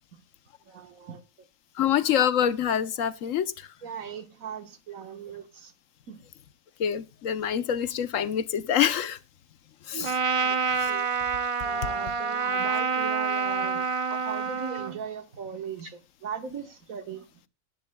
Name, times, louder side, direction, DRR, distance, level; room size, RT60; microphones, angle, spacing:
voice 1, 0.6-1.2 1.8-1.9 3.8-5.7 6.1-6.2 9.9-10.6 10.9-11.1 11.6-17.3, right 7 dB, 75° right, 1.6 m, -39 dB
voice 2, 1.8-3.7 6.8-9.2 9.9-10.1 10.8-10.9, left 9 dB, 70° left, 1.1 m, -26 dB
Trumpet, 10.0-15.0, right 5 dB, 45° right, 0.4 m, -27 dB
18.0 x 11.0 x 2.2 m
omnidirectional pair, 1.4 m